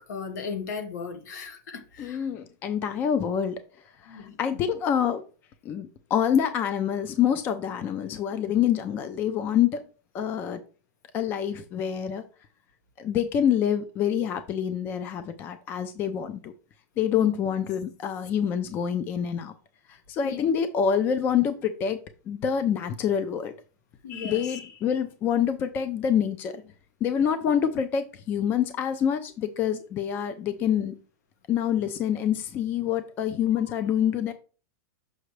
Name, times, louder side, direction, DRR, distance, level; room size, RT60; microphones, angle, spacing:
voice 1, 0.1-2.3 4.1-4.4 17.1-17.3 20.2-20.4 24.0-24.4, left 5 dB, 70° left, 1.4 m, -36 dB
voice 2, 2.0-3.6 4.0-5.2 5.6-9.8 10.1-10.6 11.1-12.2 13.0-16.5 17.0-19.5 19.9-22.0 22.3-23.5 24.1-26.6 27.0-31.0 31.5-34.3, left 8 dB, 20° left, 0.5 m, -26 dB
6.5 x 5.8 x 3.2 m
supercardioid pair, 170°, 9 cm